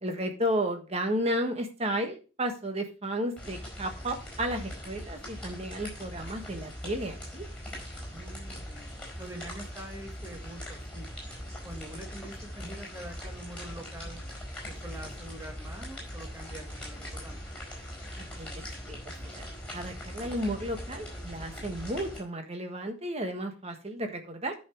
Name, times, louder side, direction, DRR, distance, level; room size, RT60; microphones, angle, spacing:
voice 1, 0.0-7.4 18.4-18.5 18.9-19.5 19.7-24.5, equal, 30° right, 5 dB, 1.5 m, -33 dB
sound 1, 3.4-22.2, equal, 5° left, 4.6 m, -41 dB
voice 2, 8.1-8.9 9.2-11.1 11.6-14.2 14.6-17.4, right 1 dB, 15° right, 2 dB, 1.9 m, -45 dB
10.5 x 5.9 x 4.6 m, 0.35 s
head